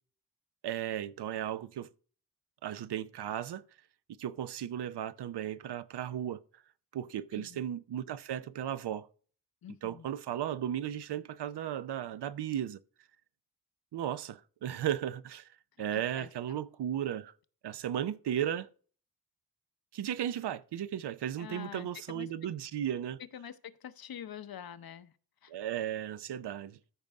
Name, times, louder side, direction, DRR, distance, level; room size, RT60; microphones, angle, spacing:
voice 1, 0.6-1.9 2.6-3.6 4.2-6.4 6.9-9.1 9.8-12.8 13.9-17.3 17.6-18.7 19.9-23.2 25.5-26.8, right 10 dB, 85° right, 0.7 m, -35 dB
voice 2, 7.3-7.6 9.6-10.1 15.9-16.6 21.4-22.3 23.2-25.2 25.4-25.5, left 9 dB, 65° left, 0.8 m, -46 dB
14.0 x 5.3 x 3.5 m
wide cardioid pair, 140°, 39 cm